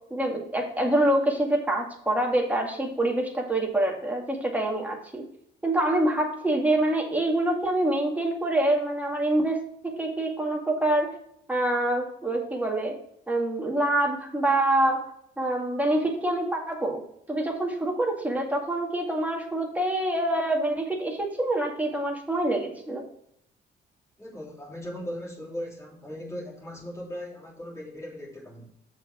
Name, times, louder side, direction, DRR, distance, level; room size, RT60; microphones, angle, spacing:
voice 1, 0.1-5.2 5.6-11.1 11.5-13.0 13.3-15.1 15.4-17.0 17.3-23.1, right 1 dB, 10° right, 0 dB, 2.1 m, -26 dB
voice 2, 24.2-28.7, equal, 15° left, -3 dB, 3.1 m, -38 dB
6.9 x 4.9 x 6.0 m, 0.71 s
cardioid pair, 90°, 20 cm